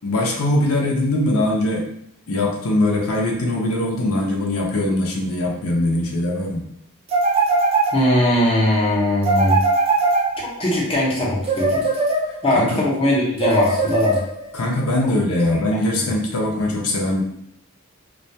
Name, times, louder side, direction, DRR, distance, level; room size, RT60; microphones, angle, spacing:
voice 1, 0.0-1.8 2.3-6.6 12.5-12.8 14.5-17.2, left 1 dB, 75° left, -1 dB, 0.5 m, -21 dB
sound 1, 7.1-8.4 9.2-10.7 11.4-12.6 13.4-14.6, right 3 dB, 25° right, 0.3 m, -20 dB
voice 2, 7.9-9.6 10.4-11.8 12.4-14.2 16.0-16.1, left 1 dB, 25° left, -5 dB, 0.6 m, -20 dB
2.3 x 2.1 x 2.7 m, 0.70 s
head